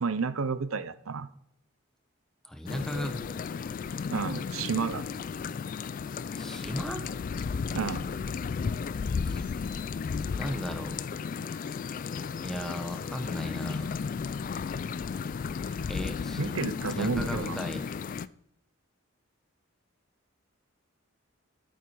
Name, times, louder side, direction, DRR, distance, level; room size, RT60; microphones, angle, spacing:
voice 1, 0.0-1.3 4.1-5.0 7.7-8.1 16.4-17.6, right 5 dB, 90° right, 14 dB, 0.6 m, -31 dB
voice 2, 2.4-3.4 6.3-7.1 9.3-9.5 10.4-11.1 12.4-14.0 15.9-16.4 16.9-17.9, equal, 5° left, 6 dB, 1.2 m, -36 dB
sound 1, 2.7-18.3, left 5 dB, 40° left, 0.3 m, -34 dB
12.0 x 9.0 x 4.7 m, 0.74 s
head